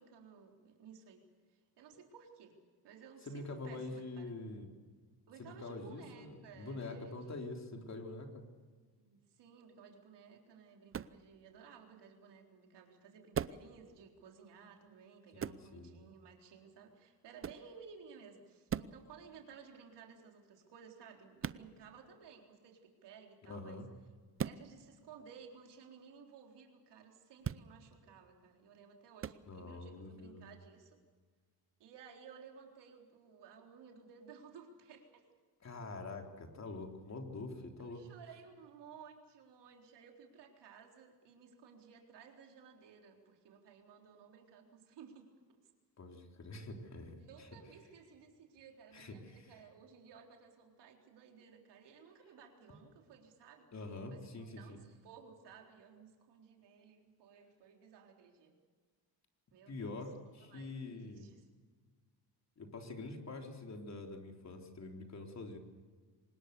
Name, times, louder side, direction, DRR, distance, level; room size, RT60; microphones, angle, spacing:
voice 1, 0.0-2.5 2.8-4.3 5.3-7.3 9.0-23.8 24.4-31.0 31.8-35.2 37.8-45.3 47.2-53.7 54.1-58.5 59.5-59.9 60.5-61.5, right 6 dB, 75° right, 2 dB, 4.0 m, -57 dB
voice 2, 3.3-4.7 5.4-8.4 15.3-15.9 23.5-23.9 29.5-30.4 35.6-38.0 46.0-47.5 48.9-49.4 53.7-54.8 59.7-61.3 62.6-65.6, left 2 dB, 40° left, 3 dB, 3.8 m, -45 dB
sound 1, 10.9-11.2 13.3-13.7 15.4-15.6 17.4-17.7 18.7-19.0 21.4-21.6 24.4-24.6 27.4-27.7 29.2-29.4, right 8 dB, 30° right, 0.7 m, -38 dB
25.0 x 20.5 x 7.0 m, 1.5 s
cardioid pair, 95°, 42 cm